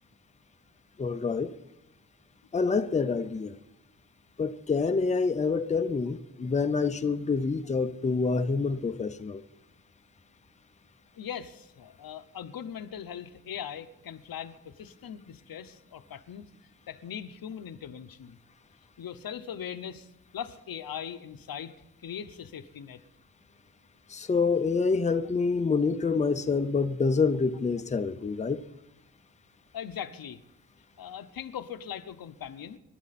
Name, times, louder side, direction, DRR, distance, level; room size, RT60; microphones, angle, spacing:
voice 1, 1.0-1.5 2.5-3.6 4.4-9.4 24.1-28.6, left 4 dB, 20° left, 0.5 m, -27 dB
voice 2, 11.2-16.4 16.9-18.4 19.0-20.1 20.3-21.7 22.0-23.0 29.7-30.4 31.0-32.8, left 8 dB, 90° left, 0.9 m, -40 dB
26.0 x 11.5 x 4.2 m
wide cardioid pair, 180°, 34 cm